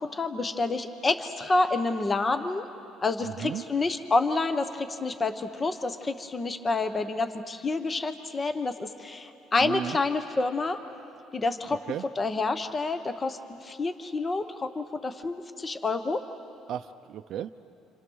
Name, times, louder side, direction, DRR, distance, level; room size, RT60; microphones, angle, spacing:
voice 1, 0.0-2.6 3.0-10.8 11.3-11.8 12.2-16.2, left 3 dB, 20° left, 9 dB, 0.9 m, -28 dB
voice 2, 3.2-3.6 9.6-10.0 11.9-12.0 16.7-17.5, right 10 dB, 55° right, 6 dB, 0.5 m, -34 dB
27.5 x 27.0 x 6.3 m, 2.8 s
cardioid pair, 135°, 0 cm